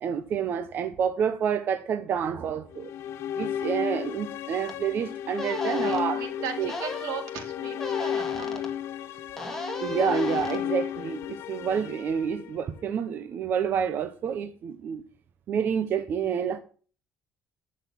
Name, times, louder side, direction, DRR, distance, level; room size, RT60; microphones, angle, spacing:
voice 1, 0.0-2.9 3.3-6.2 6.6-6.7 9.8-15.0 15.5-16.6, right 7 dB, 40° right, 0.9 m, -28 dB
sound 1, 2.7-12.9, left 10 dB, 55° left, 0.6 m, -33 dB
sound 2, 4.7-4.8 5.4-6.0 6.7-7.2 7.8-8.7 9.4-10.6, left 1 dB, 5° left, 2.1 m, -36 dB
voice 2, 5.7-8.8, right 6 dB, 90° right, 4.1 m, -38 dB
12.0 x 6.7 x 7.4 m
cardioid pair, 175°, 5 cm